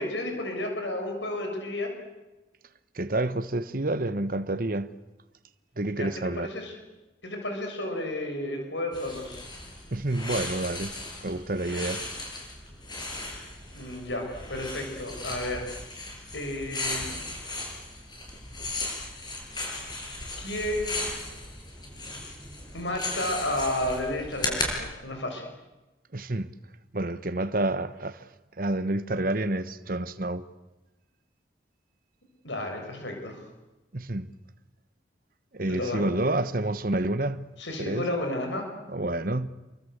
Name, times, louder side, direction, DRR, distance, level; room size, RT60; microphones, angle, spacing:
voice 1, 0.0-1.9 5.9-6.7 7.2-9.5 13.7-15.7 16.0-17.2 20.4-21.0 22.7-25.5 32.4-33.4 35.7-36.0 37.6-38.7, left 1 dB, 80° left, 6.9 m, -32 dB
voice 2, 2.9-4.9 5.8-6.5 9.9-10.9 11.2-12.0 26.1-26.5 26.9-28.3 28.6-30.4 33.9-34.3 35.5-37.5 37.8-38.0 38.9-39.5, right 2 dB, 50° right, 1.2 m, -28 dB
sound 1, 8.9-24.7, left 2 dB, 25° left, 6.8 m, -36 dB
29.0 x 24.0 x 8.1 m
head